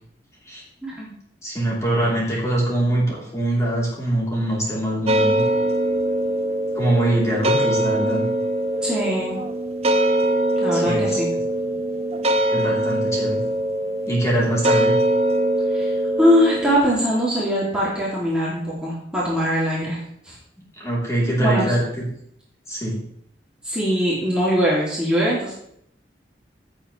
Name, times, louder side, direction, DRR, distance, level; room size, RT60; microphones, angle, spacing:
voice 1, 0.8-1.1 8.8-9.4 10.6-11.3 15.7-20.0 20.2-20.4 21.4-21.7 23.6-25.6, equal, 5° right, -8 dB, 2.7 m, -21 dB
voice 2, 1.4-5.4 6.7-8.3 10.7-11.2 12.5-13.4 14.1-15.0 20.8-22.1 22.7-23.0, right 1 dB, 15° left, -5 dB, 3.5 m, -23 dB
sound 1, 5.1-16.8, right 1 dB, 35° right, 0.8 m, -22 dB
16.0 x 7.4 x 3.3 m, 0.69 s
head